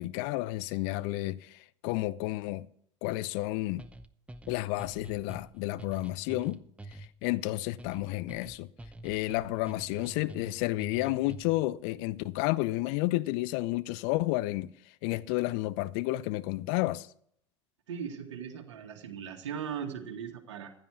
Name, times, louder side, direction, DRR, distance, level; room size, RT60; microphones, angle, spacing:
voice 1, 0.0-2.7 3.0-3.9 4.5-8.7 9.0-17.1, left 18 dB, 50° left, 0.7 m, -31 dB
sound 1, 3.8-11.7, right 1 dB, 10° right, 0.8 m, -47 dB
voice 2, 17.9-20.7, right 7 dB, 65° right, 2.2 m, -38 dB
15.5 x 10.5 x 4.7 m
figure-of-eight pair, 80°, 16 cm